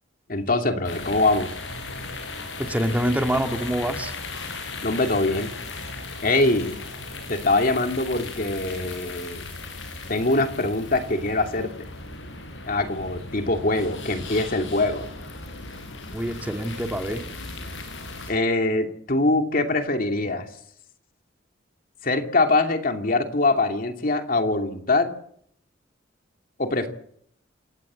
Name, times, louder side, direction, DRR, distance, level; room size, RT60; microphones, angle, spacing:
voice 1, 0.3-1.5 4.8-5.5 6.2-6.8 7.3-9.5 10.1-11.9 12.7-15.1 18.3-20.5 22.0-25.1 26.6-26.9, left 2 dB, 50° left, 4 dB, 2.7 m, -23 dB
sound 1, 0.8-18.3, left 3 dB, 80° left, 6.0 m, -37 dB
voice 2, 2.6-4.1 16.1-17.2, equal, 10° right, 4 dB, 2.1 m, -26 dB
28.0 x 17.0 x 7.7 m, 0.66 s
head